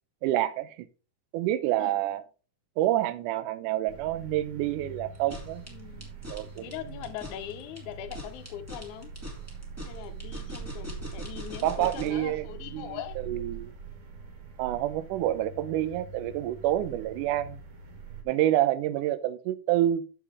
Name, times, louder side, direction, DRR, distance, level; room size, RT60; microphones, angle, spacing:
voice 1, 0.2-0.9 1.3-2.2 2.8-5.6 6.3-6.6 11.6-12.5 12.7-13.0 13.3-13.7 14.6-17.6 18.3-20.0, right 13 dB, 80° right, 1.8 m, -28 dB
sound 1, 3.9-18.2, right 6 dB, 55° right, 2.6 m, -44 dB
sound 2, 5.1-12.2, left 1 dB, 10° right, 0.9 m, -42 dB
voice 2, 5.7-6.1 6.6-9.1 9.8-13.2, left 11 dB, 75° left, 1.8 m, -41 dB
7.3 x 6.8 x 3.6 m
omnidirectional pair, 4.2 m